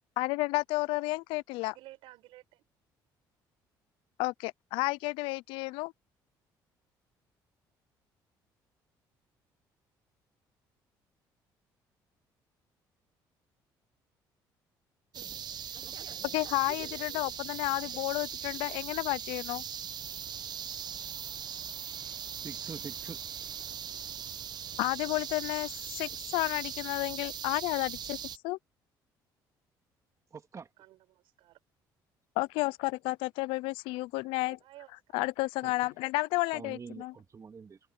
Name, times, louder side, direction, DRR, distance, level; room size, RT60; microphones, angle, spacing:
voice 1, 0.2-1.7 4.2-5.9 16.3-19.6 24.8-28.2 28.4-28.6 32.4-34.6 35.1-37.1, left 22 dB, 85° left, 0.5 m, -31 dB
voice 2, 1.6-2.6 30.8-31.6 34.3-35.2, right 16 dB, 80° right, 7.3 m, -54 dB
sound 1, 15.1-28.4, right 8 dB, 50° right, 1.2 m, -40 dB
voice 3, 22.4-23.2 30.3-30.7 35.6-35.7 36.5-37.8, right 5 dB, 35° right, 2.8 m, -45 dB
open air
supercardioid pair, 80°, 9 cm